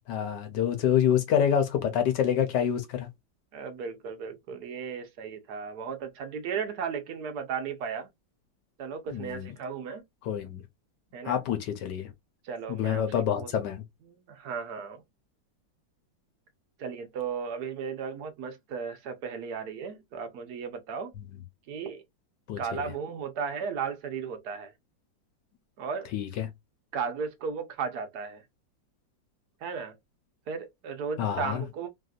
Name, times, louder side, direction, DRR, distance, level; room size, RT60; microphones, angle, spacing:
voice 1, 0.1-3.1 9.1-9.5 10.2-10.6 11.2-12.1 12.7-13.8 22.5-22.8 26.1-26.5 31.2-31.6, left 9 dB, 70° left, 1.3 m, -27 dB
voice 2, 3.5-8.1 8.8-10.0 11.1-11.4 12.4-13.5 14.1-15.0 16.8-21.1 21.7-22.0 22.6-24.7 25.8-26.1 26.9-28.4 29.6-30.0 30.5-31.9, right 6 dB, 65° right, 1.2 m, -35 dB
3.4 x 2.6 x 2.3 m
omnidirectional pair, 2.0 m